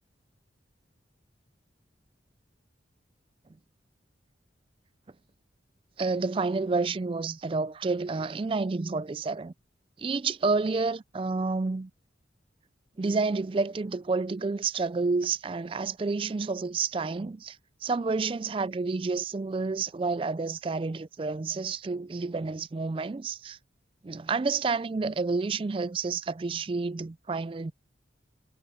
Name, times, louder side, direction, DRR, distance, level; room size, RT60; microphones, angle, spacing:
voice 1, 6.0-9.5 10.0-11.9 13.0-17.6 17.8-23.6 24.0-27.7, right 4 dB, 30° right, 0.3 m, -29 dB
head